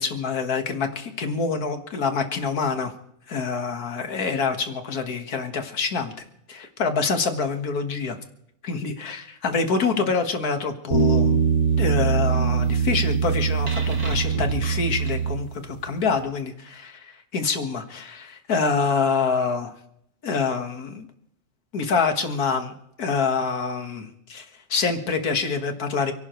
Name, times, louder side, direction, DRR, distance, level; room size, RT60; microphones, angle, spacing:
voice 1, 0.0-2.9 3.3-6.1 6.5-8.2 8.6-11.4 11.8-19.7 20.2-21.1 21.7-22.7 23.0-26.1, left 5 dB, 90° left, 7 dB, 2.0 m, -26 dB
sound 1, 10.9-15.8, right 6 dB, 85° right, 3.9 m, -22 dB
29.5 x 11.5 x 3.1 m, 0.77 s
omnidirectional pair, 1.5 m